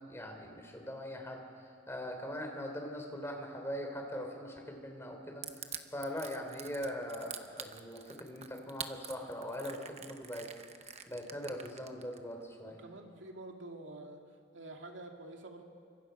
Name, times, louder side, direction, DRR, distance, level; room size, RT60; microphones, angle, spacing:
voice 1, 0.1-1.4 1.9-10.5 10.8-12.8, equal, 15° left, 2 dB, 3.3 m, -41 dB
Crushing, 5.4-12.2, right 8 dB, 30° right, 1.0 m, -45 dB
voice 2, 12.6-14.2 14.5-15.6, right 2 dB, 70° right, 3 dB, 2.3 m, -48 dB
29.0 x 25.0 x 5.7 m, 2.2 s
head